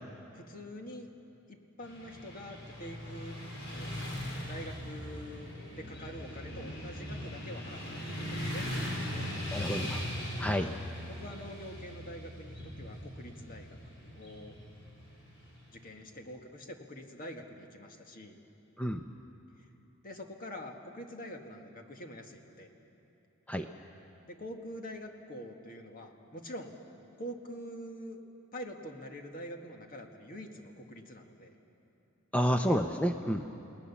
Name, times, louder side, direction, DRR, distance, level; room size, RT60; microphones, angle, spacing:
voice 1, 0.3-1.1 1.5-3.4 3.7-3.9 4.4-9.7 11.1-14.6 15.7-18.4 19.6-19.7 20.0-22.7 24.3-26.8 27.2-28.2 28.5-31.5, equal, 45° left, 3 dB, 1.8 m, -45 dB
Motorcycle / Traffic noise roadway noise, 1.8-15.9, left 1 dB, 60° left, 5.5 m, -40 dB
voice 2, 9.5-10.0 10.4-10.7 18.8-19.1 23.5-23.7 32.3-33.5, equal, 5° left, 5 dB, 0.6 m, -29 dB
29.5 x 18.5 x 7.1 m, 2.9 s
head